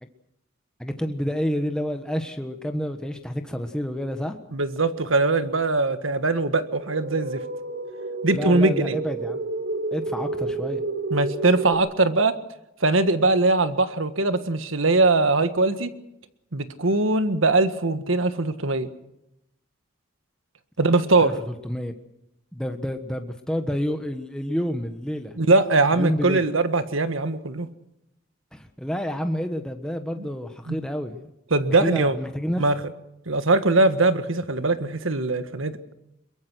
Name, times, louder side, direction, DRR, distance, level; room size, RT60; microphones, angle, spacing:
voice 1, 0.8-4.4 8.3-9.4 9.9-10.8 21.2-21.9 22.5-25.4 25.9-26.4 28.5-31.3 31.8-32.6, equal, 5° left, 6 dB, 1.3 m, -29 dB
voice 2, 4.5-7.4 8.2-9.0 11.1-12.3 12.8-15.9 16.5-18.9 20.8-21.3 25.4-27.7 30.7-30.8 31.5-32.1 32.6-32.8 33.3-35.8, right 2 dB, 85° right, 10 dB, 1.6 m, -21 dB
sound 1, 6.8-11.8, right 2 dB, 55° right, 2.7 m, -30 dB
23.0 x 22.5 x 6.3 m, 0.87 s
head